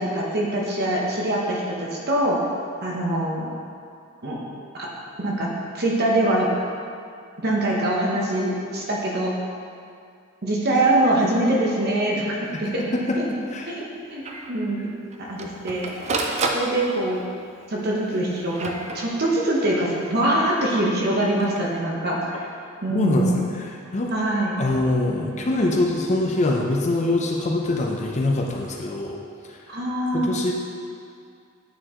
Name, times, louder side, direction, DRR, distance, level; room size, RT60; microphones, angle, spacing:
voice 1, 0.0-2.4 2.8-3.5 4.2-4.4 4.7-4.9 5.2-5.5 5.7-6.5 7.4-9.3 10.4-12.3 12.6-12.9 13.2-13.3 13.7-13.8 14.1-14.9 15.2-15.9 16.5-17.2 17.7-22.5 22.8-23.5 24.1-24.6 29.7-30.3, right 1 dB, 50° right, -3 dB, 0.9 m, -23 dB
voice 2, 12.6-13.7 22.9-24.1 24.6-29.2 29.5-29.6 30.1-30.5, left 2 dB, 35° left, 0 dB, 0.6 m, -24 dB
Printer, 12.6-12.7 13.0-13.1 13.5-13.6 14.3-14.5 15.1-17.2 18.0-19.5 21.2-21.6, right 3 dB, 35° right, 0.5 m, -30 dB
8.7 x 4.6 x 3.7 m, 2.3 s
head